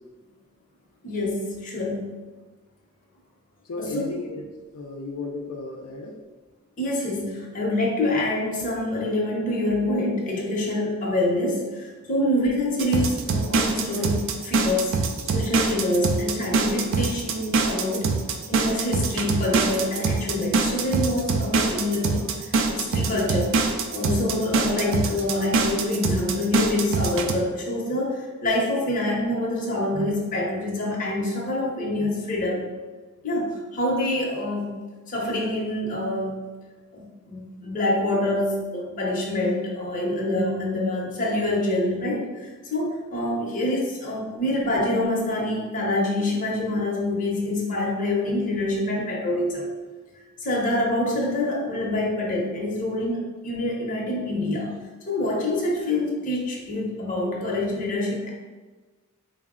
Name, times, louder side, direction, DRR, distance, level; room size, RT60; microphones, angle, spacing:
voice 1, 1.0-2.1 3.8-4.0 6.8-14.9 15.3-18.1 18.5-23.6 23.9-32.7 33.2-34.8 35.1-36.4 36.9-49.7 50.4-54.8 55.1-58.3, left 1 dB, 40° left, -2 dB, 0.7 m, -26 dB
voice 2, 3.6-4.4 4.7-6.2, left 3 dB, 80° left, 1 dB, 0.4 m, -34 dB
sound 1, 12.8-27.3, right 4 dB, 60° right, 0.4 m, -24 dB
4.1 x 2.0 x 3.6 m, 1.3 s
head